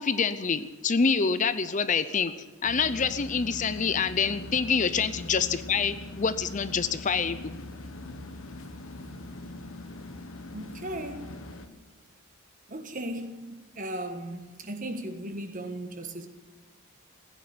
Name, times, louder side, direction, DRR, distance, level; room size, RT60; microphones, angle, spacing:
voice 1, 0.0-2.3 2.6-7.6, left 5 dB, 35° left, 0.5 m, -26 dB
sound 1, 2.6-11.7, left 2 dB, 75° left, 1.2 m, -42 dB
voice 2, 10.5-11.3 12.7-16.3, right 1 dB, 40° right, 1.4 m, -37 dB
16.0 x 9.6 x 9.4 m
head